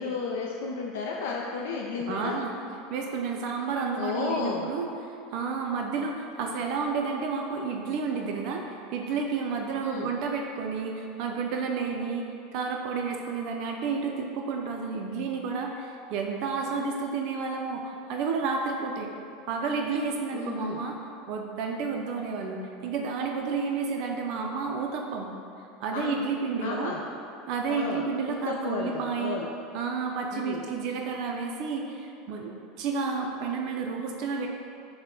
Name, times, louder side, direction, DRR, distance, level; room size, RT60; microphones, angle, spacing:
voice 1, 0.0-2.4 3.9-4.7 9.8-10.1 20.3-20.8 25.9-26.2 26.6-27.0 27.7-29.5 30.3-30.6, left 5 dB, 80° left, -2 dB, 0.3 m, -33 dB
voice 2, 2.1-2.5 2.9-4.9 5.3-12.3 12.5-19.1 19.5-25.3 25.8-26.9 27.5-29.4 29.7-32.5 32.8-34.5, right 5 dB, 45° right, 1 dB, 0.4 m, -31 dB
5.5 x 2.1 x 3.7 m, 2.6 s
supercardioid pair, 165°, 0 cm